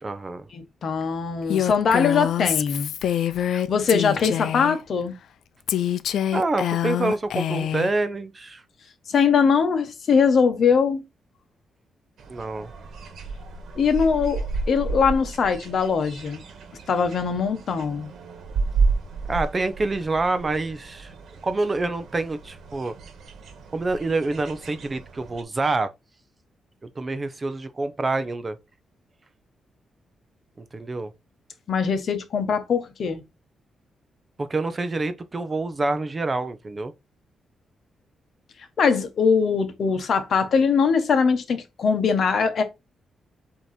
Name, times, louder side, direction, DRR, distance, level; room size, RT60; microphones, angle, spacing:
voice 1, 0.0-0.4 6.3-8.6 12.3-12.7 19.3-21.1 21.4-23.0 23.7-25.9 27.0-28.6 30.6-31.1 34.4-36.9, right 3 dB, 20° right, 0.6 m, -27 dB
voice 2, 0.5-2.9 3.4-5.2 9.1-11.0 13.8-16.4 16.9-18.1 31.7-33.2 38.8-42.6, left 6 dB, 50° left, 1.1 m, -22 dB
Female speech woman speaking, 1.5-4.8 5.7-7.9, left 10 dB, 80° left, 0.4 m, -25 dB
sound 1, 12.2-25.4, right 4 dB, 70° right, 1.4 m, -32 dB
7.9 x 2.9 x 4.2 m
wide cardioid pair, 165°, 0 cm